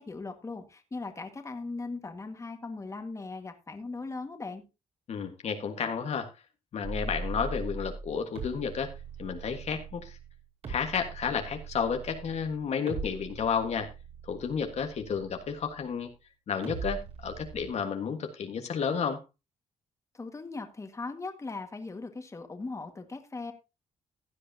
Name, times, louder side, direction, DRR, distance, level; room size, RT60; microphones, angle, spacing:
voice 1, 0.0-4.6 20.1-23.5, left 3 dB, 25° left, 6 dB, 1.8 m, -39 dB
voice 2, 5.1-6.3 6.7-8.9 9.2-10.2 10.7-13.9 14.2-16.1 16.5-19.2, left 6 dB, 60° left, 5 dB, 1.6 m, -31 dB
sound 1, 6.8-16.1 16.6-17.7, right 4 dB, 55° right, 5.9 m, -41 dB
16.0 x 9.9 x 2.8 m, 0.27 s
cardioid pair, 110°, 13 cm